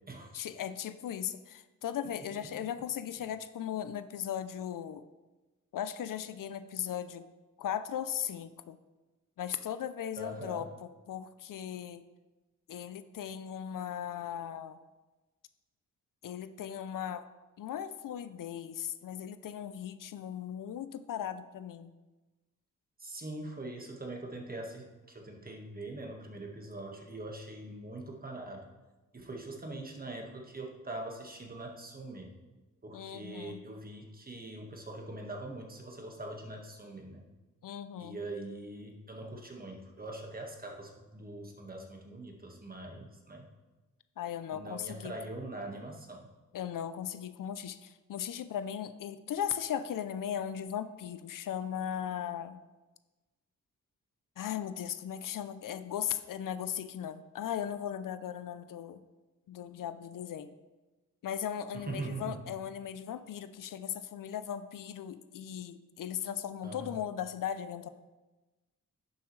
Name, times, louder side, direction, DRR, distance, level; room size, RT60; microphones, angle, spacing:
voice 1, 0.3-5.0 5.7-7.2 7.6-8.8 9.4-12.0 12.7-14.8 16.2-17.2 17.6-21.9 32.9-33.6 37.6-38.2 44.2-45.1 46.5-52.6 54.4-59.0 59.5-60.5 61.2-67.9, left 9 dB, 75° left, 12 dB, 0.5 m, -37 dB
voice 2, 10.1-10.7 23.0-28.7 29.1-32.3 32.8-37.2 38.0-43.4 44.5-46.3 61.7-62.4 66.6-67.0, right 2 dB, 30° right, 1 dB, 1.6 m, -42 dB
11.0 x 7.0 x 3.2 m, 1.2 s
wide cardioid pair, 95°, 32 cm